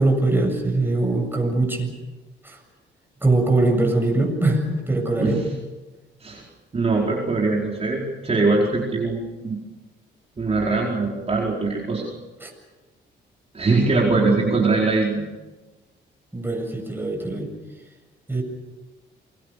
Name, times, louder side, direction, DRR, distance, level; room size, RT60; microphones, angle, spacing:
voice 1, 0.0-1.9 2.4-2.6 3.2-5.4 12.4-12.5 14.0-14.5 16.3-17.5 18.3-18.4, right 2 dB, 10° right, 2 dB, 7.6 m, -22 dB
voice 2, 6.7-9.6 10.4-12.0 13.5-15.2, right 3 dB, 30° right, -3 dB, 4.9 m, -22 dB
28.0 x 22.0 x 6.8 m, 1.2 s
cardioid pair, 90°, 20 cm